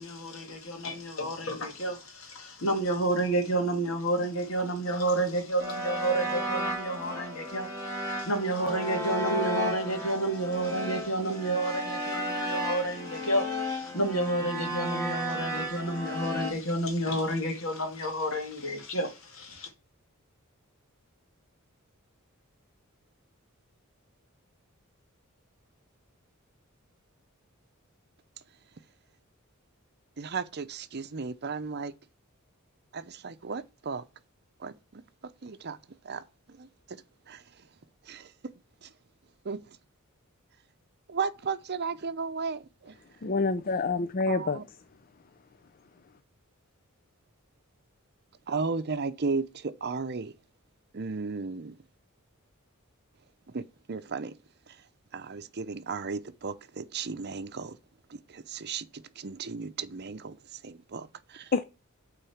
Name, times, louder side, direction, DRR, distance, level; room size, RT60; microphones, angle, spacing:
voice 1, 0.0-19.7, right 1 dB, 65° left, 2.1 m, -30 dB
sound 1, 5.6-16.5, equal, 15° left, 2.6 m, -33 dB
voice 2, 30.2-31.9 32.9-34.0 34.6-35.0 35.4-35.8 36.0-36.2 36.6-36.7 37.3-37.4 38.1-38.3 38.8-38.9 39.4-39.6 41.1-42.9 44.3-44.6 48.5-50.3 50.9-51.7 53.5-53.6 53.9-54.3 55.1-57.8 58.3-60.4 60.6-61.5, right 4 dB, 50° right, 0.7 m, -34 dB
voice 3, 43.2-44.6 61.5-61.6, left 3 dB, 40° left, 0.5 m, -27 dB
9.0 x 3.9 x 7.2 m
head